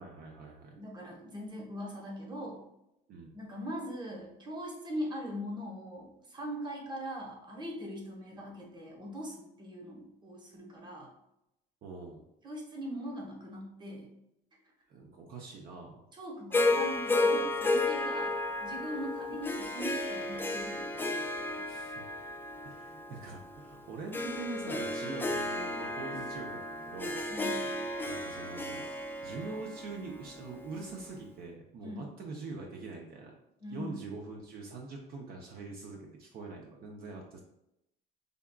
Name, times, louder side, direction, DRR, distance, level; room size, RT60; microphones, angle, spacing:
voice 1, 0.0-0.8 3.1-3.3 11.8-12.2 14.9-16.1 21.6-21.9 22.6-27.2 28.0-33.4 33.7-37.4, right 3 dB, 65° right, 0 dB, 0.6 m, -44 dB
voice 2, 0.8-2.6 3.3-11.1 12.4-14.1 16.1-18.3 18.6-21.6 27.3-27.7 31.8-32.0 33.6-34.0, equal, 25° right, -1 dB, 1.0 m, -41 dB
Harp, 16.5-30.9, left 2 dB, 10° left, 0.3 m, -33 dB
5.1 x 2.3 x 2.2 m, 0.83 s
cardioid pair, 110°, 17 cm